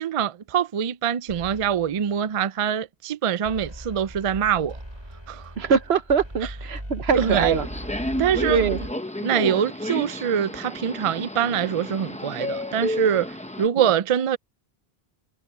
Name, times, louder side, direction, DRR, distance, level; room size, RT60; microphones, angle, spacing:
voice 1, 0.0-4.8 5.3-5.5 6.4-6.5 7.1-7.6 8.2-8.6 9.2-14.4, right 8 dB, 50° right, 0.4 m, -24 dB
sound 1, 1.3-2.0 3.4-8.9, equal, 25° right, 8.1 m, -37 dB
voice 2, 5.6-7.6 8.5-8.8 13.8-13.9, right 6 dB, 80° right, 1.3 m, -22 dB
Subway metro underground, 7.1-13.7, left 1 dB, 5° left, 0.9 m, -32 dB
omnidirectional pair, 1.1 m